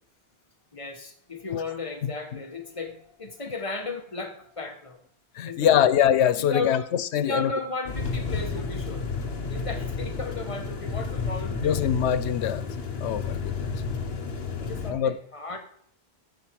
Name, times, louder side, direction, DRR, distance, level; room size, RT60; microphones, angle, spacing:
voice 1, 0.7-5.0 5.4-5.9 6.5-6.9 7.1-9.1 9.5-12.4 14.6-15.6, left 3 dB, 30° left, 6 dB, 1.2 m, -35 dB
voice 2, 5.3-7.5 11.6-12.7 13.0-13.7 14.9-15.2, left 9 dB, 90° left, 15 dB, 0.9 m, -23 dB
sound 1, 7.9-14.9, left 4 dB, 65° left, 1.3 m, -31 dB
14.5 x 5.0 x 4.6 m, 0.65 s
omnidirectional pair, 1.1 m